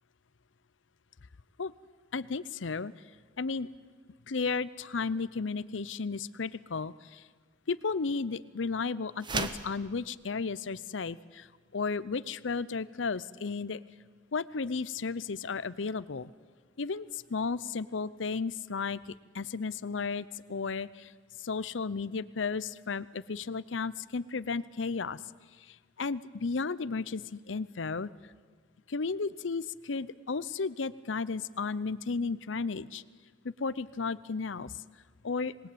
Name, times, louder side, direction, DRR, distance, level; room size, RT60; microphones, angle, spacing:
voice 1, 2.1-2.9 3.4-3.7 4.3-7.2 7.7-11.5 11.7-13.8 14.3-16.3 16.8-19.0 19.3-21.1 21.4-25.2 25.7-28.1 28.9-33.0 33.4-34.8 35.2-35.5, left 4 dB, 80° left, 18 dB, 0.7 m, -34 dB
sound 1, 9.2-9.7, right 3 dB, 25° right, 1.1 m, -33 dB
26.5 x 20.5 x 8.6 m, 1.5 s
head